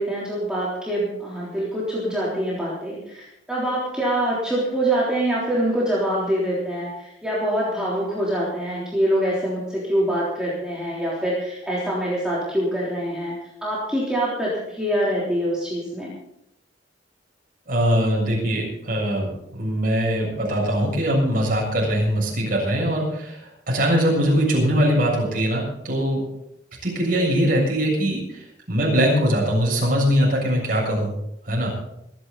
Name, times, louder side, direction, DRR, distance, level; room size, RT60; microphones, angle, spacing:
voice 1, 0.0-13.4 13.6-16.1, right 1 dB, 5° right, -7 dB, 3.6 m, -25 dB
voice 2, 17.7-23.4 23.7-26.2 26.8-28.4 28.7-31.1 31.5-31.7, equal, 50° right, -3 dB, 7.2 m, -21 dB
25.0 x 10.5 x 4.1 m, 0.80 s
head